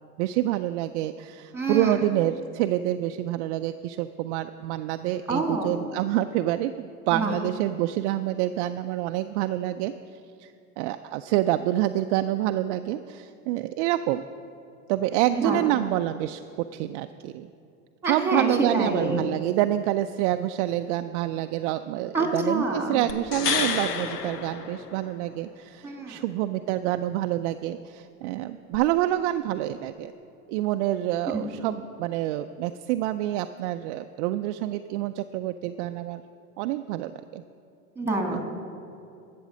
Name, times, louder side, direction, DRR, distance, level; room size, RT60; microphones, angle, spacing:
voice 1, 0.2-9.9 10.4-14.2 14.9-16.4 16.7-17.5 18.1-30.1 30.5-36.2 36.6-37.4 38.3-38.4, right 14 dB, 50° right, 9 dB, 0.5 m, -27 dB
voice 2, 1.5-2.0 5.3-5.7 7.1-7.3 15.4-15.6 18.0-19.2 22.1-23.0 25.8-26.2 31.3-31.4 38.0-38.4, right 2 dB, 5° right, 2 dB, 2.3 m, -26 dB
sound 1, 23.1-25.4 28.7-28.8, left 6 dB, 90° left, 0.9 m, -29 dB
13.0 x 7.8 x 6.2 m, 2.6 s
hypercardioid pair, 85°, 46 cm